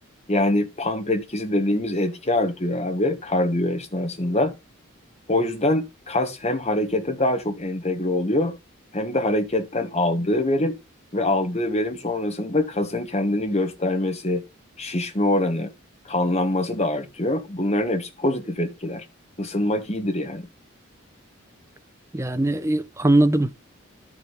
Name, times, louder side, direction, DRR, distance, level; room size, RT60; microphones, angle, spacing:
voice 1, 0.3-4.5 5.3-8.6 8.9-10.7 11.1-14.4 14.8-15.7 16.0-19.0 19.4-20.5, left 1 dB, 30° left, 1.4 m, -24 dB
voice 2, 22.1-23.5, right 1 dB, 15° right, 0.6 m, -20 dB
12.0 x 4.9 x 5.6 m
head